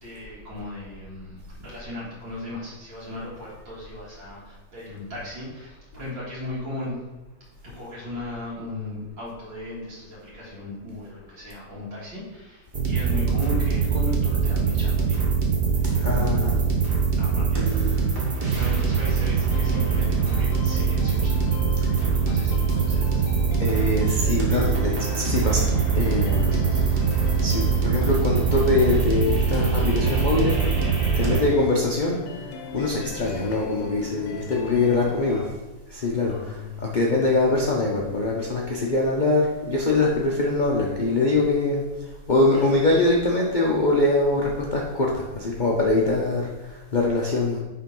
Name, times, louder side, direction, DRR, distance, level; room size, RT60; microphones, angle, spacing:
voice 1, 0.0-7.0 7.6-15.2 15.8-16.6 17.2-18.3 18.5-21.5 22.1-23.3 31.2-31.4 35.3-35.4 36.2-37.1 42.5-42.7, left 1 dB, 85° right, -8 dB, 2.5 m, -37 dB
sound 1, 12.7-31.4, right 6 dB, 35° right, 1.1 m, -23 dB
voice 2, 16.0-16.6 21.7-22.0 23.6-25.7 25.9-26.6 27.4-30.6 31.2-32.2 32.7-35.4 35.9-47.6, left 2 dB, 55° left, -2 dB, 0.5 m, -23 dB
sound 2, 19.5-35.5, left 6 dB, 80° left, 1.4 m, -39 dB
5.6 x 3.8 x 5.3 m, 1.1 s
omnidirectional pair, 2.0 m